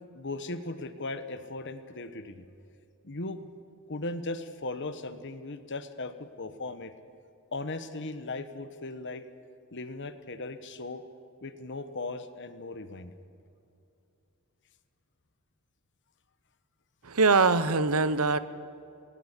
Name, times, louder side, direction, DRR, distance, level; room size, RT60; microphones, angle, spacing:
voice 1, 0.1-2.4 3.0-3.4 3.9-6.9 7.5-9.2 9.7-11.0 11.4-13.1, left 2 dB, 55° left, 11 dB, 1.3 m, -37 dB
voice 2, 17.0-18.4, right 4 dB, 80° right, 14 dB, 0.9 m, -23 dB
20.0 x 19.0 x 8.3 m, 2.6 s
head